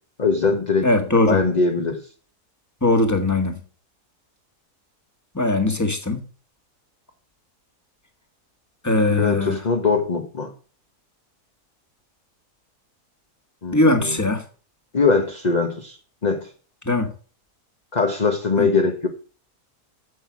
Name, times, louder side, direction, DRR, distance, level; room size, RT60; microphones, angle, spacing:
voice 1, 0.2-0.9 1.3-2.0 9.1-10.5 13.6-14.2 14.9-16.5 17.9-19.1, left 4 dB, 30° left, 1.2 m, -21 dB
voice 2, 0.8-1.4 2.8-3.5 5.3-6.2 8.8-9.6 13.7-14.4 16.8-17.1 18.6-18.7, left 2 dB, 10° left, 1.7 m, -20 dB
9.4 x 7.9 x 6.1 m
omnidirectional pair, 1.7 m